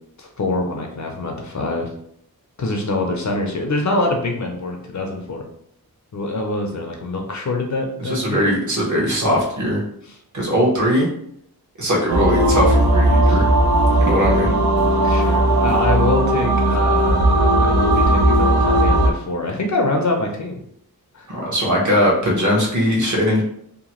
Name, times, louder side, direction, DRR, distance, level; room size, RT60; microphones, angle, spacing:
voice 1, 0.2-1.9 2.6-5.4 6.1-8.5 10.1-10.2 13.2-13.4 15.0-20.6 21.1-21.3, left 2 dB, 50° left, 2 dB, 0.5 m, -24 dB
voice 2, 8.0-9.8 10.3-11.1 11.8-13.5 14.0-14.5 21.3-23.4, equal, 50° right, -3 dB, 1.1 m, -20 dB
sound 1, 12.1-19.1, right 1 dB, 70° right, 0.5 m, -16 dB
2.8 x 2.2 x 2.9 m, 0.71 s
wide cardioid pair, 75°, 38 cm